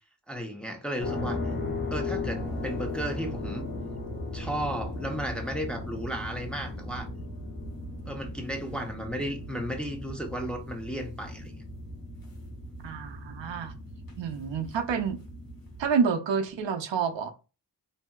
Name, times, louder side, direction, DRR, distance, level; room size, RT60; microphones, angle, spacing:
voice 1, 0.3-1.4 1.9-3.6 4.3-7.1 8.1-11.6, equal, ahead, 0.6 m, -34 dB
sound 1, 1.0-15.9, left 2 dB, 55° left, 1.0 m, -37 dB
voice 2, 12.8-13.7 14.2-15.2 15.8-17.3, right 6 dB, 90° right, 0.6 m, -28 dB
2.7 x 2.7 x 2.3 m
wide cardioid pair, 70°, 43 cm